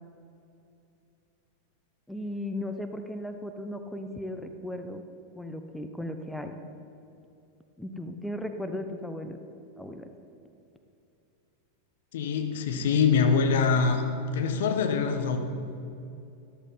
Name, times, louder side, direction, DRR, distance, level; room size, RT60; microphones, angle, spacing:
voice 1, 2.1-5.0 5.3-6.6 7.8-9.4 9.8-10.1, left 1 dB, 5° left, 7 dB, 0.9 m, -36 dB
voice 2, 12.1-14.0 14.3-15.4, left 5 dB, 55° left, 6 dB, 1.4 m, -24 dB
13.5 x 13.0 x 5.6 m, 2.7 s
figure-of-eight pair, 90°, 0 cm